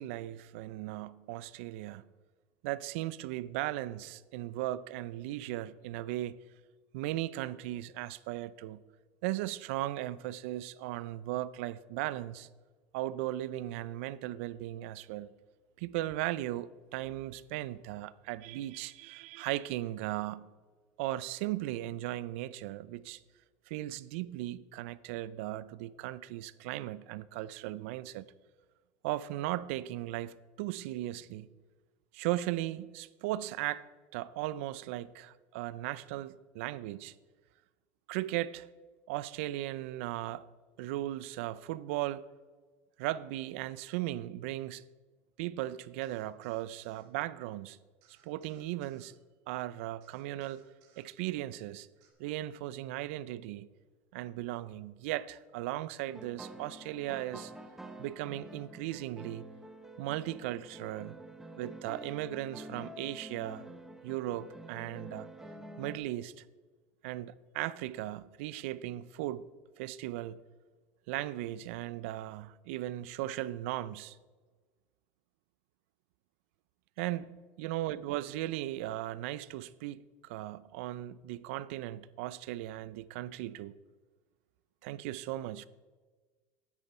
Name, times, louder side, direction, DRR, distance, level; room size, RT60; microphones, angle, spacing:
voice 1, 0.0-2.0 2.6-6.4 6.9-8.8 9.2-12.5 12.9-15.3 15.8-20.5 21.0-23.2 23.7-28.3 29.0-31.5 32.1-33.9 34.1-37.1 38.1-38.7 39.1-40.5 40.8-42.3 43.0-44.8 45.4-47.8 48.2-49.2 49.5-50.6 51.0-51.9 52.2-53.7 54.1-57.5 58.0-59.4 60.0-61.2 61.6-63.6 64.0-65.3 65.8-66.4 67.0-69.5 69.8-70.4 71.1-74.2 77.0-83.7 84.8-85.7, right 15 dB, 80° right, 0.4 m, -37 dB
sound 1, 46.0-47.1 48.0-49.1 50.0-51.1 52.0-52.1, right 8 dB, 55° right, 1.8 m, -67 dB
sound 2, 56.0-66.0, right 1 dB, 5° right, 0.7 m, -48 dB
9.7 x 9.0 x 4.3 m
cardioid pair, 165°, 7 cm